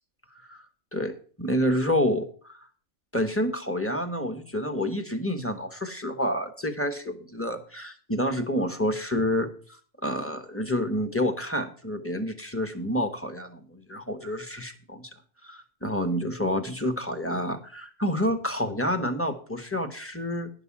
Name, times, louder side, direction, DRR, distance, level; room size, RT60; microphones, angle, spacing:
voice 1, 0.9-2.6 3.1-15.1 15.4-20.5, equal, 10° left, 7 dB, 1.0 m, -28 dB
10.5 x 5.9 x 7.2 m, 0.43 s
omnidirectional pair, 1.5 m